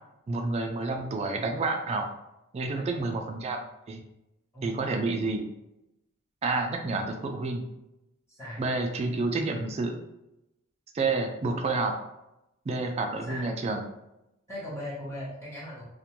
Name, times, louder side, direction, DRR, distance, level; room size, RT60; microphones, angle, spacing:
voice 1, 0.3-2.1 2.5-3.6 3.9-4.0 4.6-5.5 6.4-7.6 8.6-9.9 10.9-11.9 12.7-13.8, right 3 dB, 30° right, 4 dB, 0.3 m, -29 dB
voice 2, 2.7-3.2 4.5-4.7 8.3-8.6 13.2-13.5 14.5-15.8, equal, 15° left, -8 dB, 0.8 m, -39 dB
2.5 x 2.1 x 2.9 m, 0.88 s
head